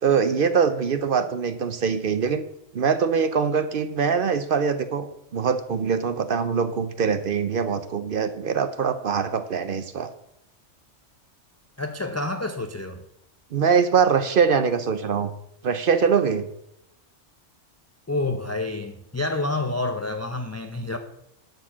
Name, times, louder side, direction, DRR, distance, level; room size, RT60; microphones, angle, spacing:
voice 1, 0.0-2.4 2.7-10.1 13.5-15.3 15.6-16.5, right 6 dB, 55° right, 11 dB, 0.7 m, -23 dB
voice 2, 11.8-13.0 18.1-21.0, left 2 dB, 20° left, 6 dB, 0.4 m, -28 dB
11.5 x 4.6 x 7.2 m, 0.81 s
omnidirectional pair, 1.2 m